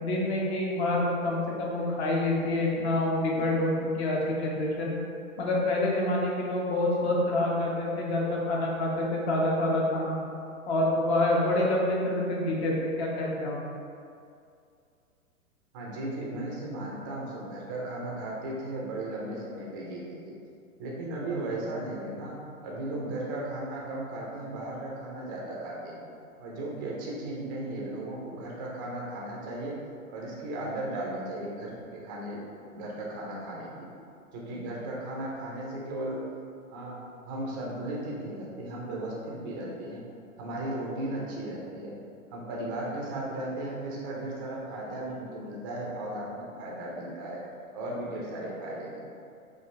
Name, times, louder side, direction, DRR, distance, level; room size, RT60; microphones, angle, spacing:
voice 1, 0.0-4.9 5.4-10.2 10.7-13.6, left 1 dB, 50° left, -3 dB, 1.1 m, -27 dB
voice 2, 15.7-20.2 20.8-22.3 22.6-26.0 26.4-29.7 30.1-32.4 32.7-33.7 34.3-36.2 36.7-37.0 37.2-40.0 40.4-41.9 42.3-47.4 47.7-49.1, right 1 dB, 15° right, -4 dB, 0.4 m, -36 dB
5.6 x 2.5 x 3.1 m, 2.4 s
hypercardioid pair, 120°, 43 cm